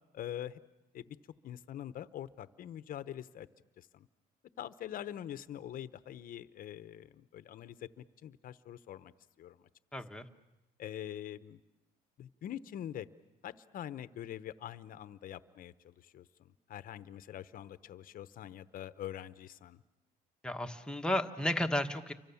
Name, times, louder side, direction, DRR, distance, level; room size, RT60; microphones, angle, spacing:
voice 1, 0.1-0.6 0.9-1.2 1.4-3.5 3.8-4.1 4.6-9.1 9.4-9.6 10.8-11.6 12.2-13.1 13.4-19.8, left 11 dB, 55° left, 14 dB, 0.9 m, -44 dB
voice 2, 9.9-10.3 20.4-22.1, left 1 dB, 5° left, 5 dB, 1.4 m, -33 dB
29.0 x 24.5 x 7.1 m, 0.94 s
cardioid pair, 110°, 17 cm